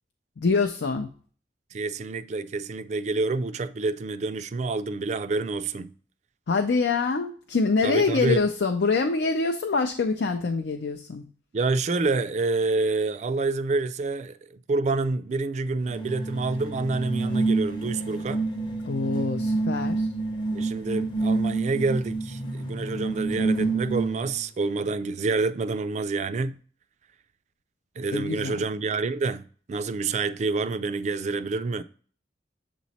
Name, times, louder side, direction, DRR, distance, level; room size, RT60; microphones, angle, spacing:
voice 1, 0.4-1.1 6.5-11.2 18.8-20.1 28.1-28.6, left 4 dB, 85° left, 0.5 m, -25 dB
voice 2, 1.7-5.9 7.8-8.5 11.5-18.4 20.5-26.6 28.0-31.8, right 3 dB, 40° right, 0.3 m, -28 dB
sound 1, 15.8-24.4, right 3 dB, 25° left, 0.7 m, -28 dB
7.5 x 3.1 x 4.1 m
head